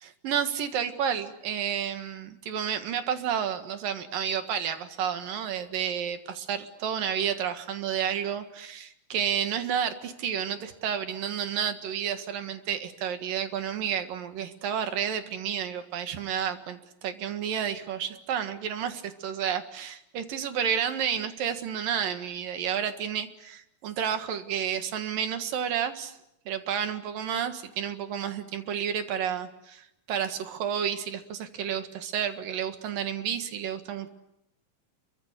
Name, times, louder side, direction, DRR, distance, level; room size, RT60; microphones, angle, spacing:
voice 1, 0.0-26.2 26.5-34.1, right 8 dB, 75° right, 8 dB, 3.4 m, -31 dB
28.0 x 24.0 x 8.3 m, 0.82 s
omnidirectional pair, 4.1 m